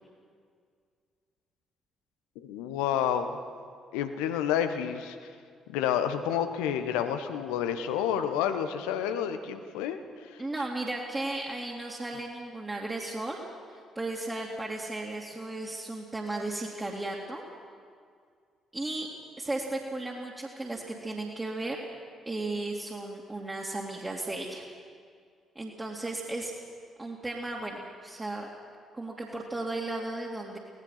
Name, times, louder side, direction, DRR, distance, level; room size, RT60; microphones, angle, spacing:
voice 1, 2.3-3.3 3.9-5.2 5.7-10.4, left 9 dB, 70° left, 9 dB, 1.2 m, -29 dB
voice 2, 10.4-13.4 13.7-17.4 18.7-19.1 19.4-21.8 22.3-24.6 25.5-26.5 27.0-28.5 28.9-30.6, right 2 dB, 20° right, -3 dB, 2.8 m, -35 dB
26.0 x 18.5 x 5.9 m, 2.1 s
figure-of-eight pair, 45°, 0 cm